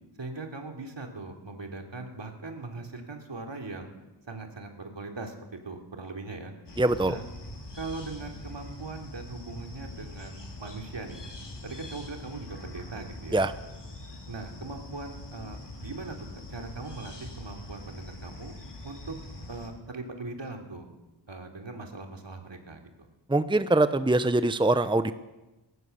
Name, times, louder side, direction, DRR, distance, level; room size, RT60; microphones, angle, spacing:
voice 1, 0.2-3.9 4.3-6.5 7.0-7.2 7.7-11.4 11.6-13.5 14.3-16.2 16.5-18.6 18.8-19.2 19.5-20.9 21.3-22.9, right 3 dB, 70° right, 3 dB, 3.4 m, -40 dB
sound 1, 6.7-19.7, left 1 dB, 65° left, 4.4 m, -43 dB
voice 2, 6.8-7.1 13.3-13.5 23.3-25.1, right 2 dB, 10° right, 12 dB, 0.8 m, -23 dB
22.0 x 18.5 x 7.0 m, 1.1 s
wide cardioid pair, 65°, 45 cm